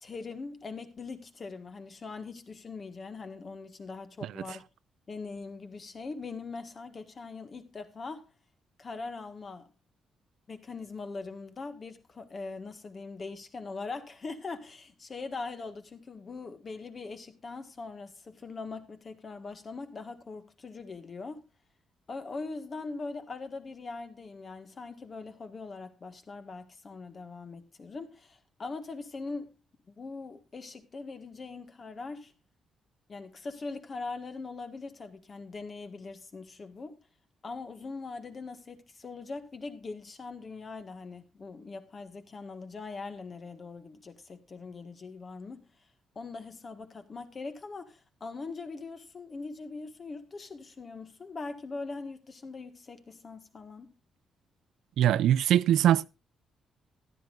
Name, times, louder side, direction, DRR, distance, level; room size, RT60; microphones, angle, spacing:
voice 1, 0.0-4.6 5.1-8.3 8.8-9.7 10.5-21.4 22.1-29.5 29.9-32.3 33.1-37.0 37.4-45.7 46.2-53.9, left 4 dB, 30° left, 1.6 m, -41 dB
voice 2, 55.0-56.1, right 11 dB, 80° right, 0.5 m, -22 dB
14.5 x 12.5 x 2.5 m
cardioid pair, 150°, 0 cm